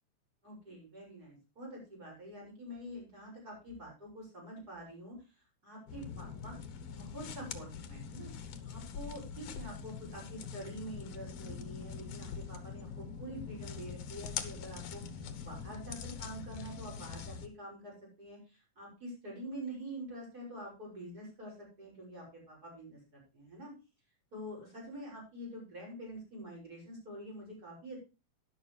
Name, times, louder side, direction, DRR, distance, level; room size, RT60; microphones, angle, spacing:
voice 1, 0.4-6.6 6.9-8.3 8.6-23.7 24.3-28.0, right 1 dB, 30° right, -2 dB, 7.1 m, -46 dB
sound 1, 5.9-17.5, left 7 dB, 65° left, 2.2 m, -43 dB
11.5 x 11.0 x 3.3 m, 0.30 s
omnidirectional pair, 3.4 m